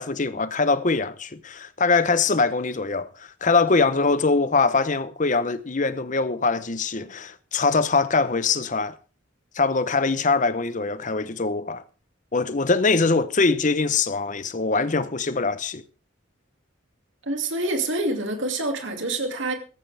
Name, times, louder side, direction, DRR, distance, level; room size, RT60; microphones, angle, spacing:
voice 1, 0.0-9.0 9.5-11.8 12.3-15.8, left 4 dB, 40° left, 0.8 m, -23 dB
voice 2, 17.3-19.5, right 2 dB, 65° right, 2.4 m, -26 dB
15.5 x 14.0 x 3.4 m
head